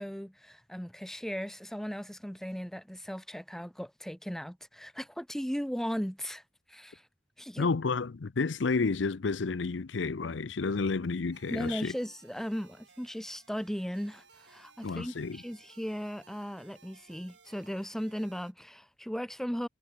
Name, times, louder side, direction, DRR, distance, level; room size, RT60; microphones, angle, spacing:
voice 1, 0.0-6.4 6.7-7.0 7.4-7.7 11.5-19.7, equal, ahead, 1.5 m, -37 dB
voice 2, 7.6-11.9 14.8-15.4, left 4 dB, 80° left, 0.6 m, -31 dB
sound 1, 11.3-18.5, right 5 dB, 70° right, 3.6 m, -60 dB
head